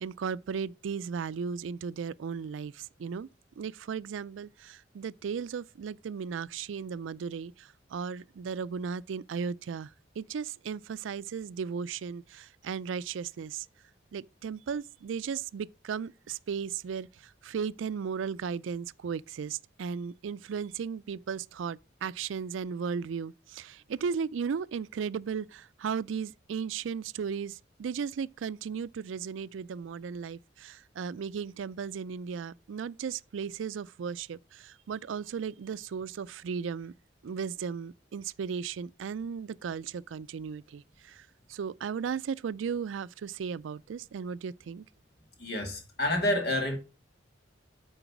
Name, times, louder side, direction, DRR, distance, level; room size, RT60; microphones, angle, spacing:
voice 1, 0.0-3.3 3.6-9.9 10.2-13.7 14.1-36.9 37.2-44.8, right 6 dB, 90° right, 0.4 m, -36 dB
voice 2, 45.4-46.8, left 1 dB, 60° left, 2.4 m, -28 dB
9.1 x 3.9 x 5.9 m
head